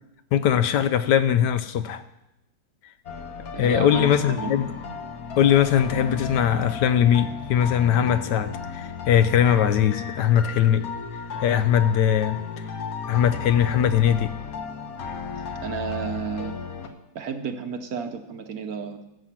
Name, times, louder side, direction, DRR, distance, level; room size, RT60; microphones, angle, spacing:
voice 1, 0.3-2.0 3.6-4.7 5.4-10.8 11.4-12.4 13.1-14.3, left 9 dB, 75° left, 11 dB, 1.1 m, -20 dB
sound 1, 3.1-16.9, left 5 dB, 55° left, 1.3 m, -34 dB
voice 2, 3.5-4.5 15.6-16.6 17.1-19.1, right 6 dB, 60° right, 7 dB, 1.1 m, -32 dB
14.0 x 7.5 x 5.9 m, 0.91 s
omnidirectional pair, 2.0 m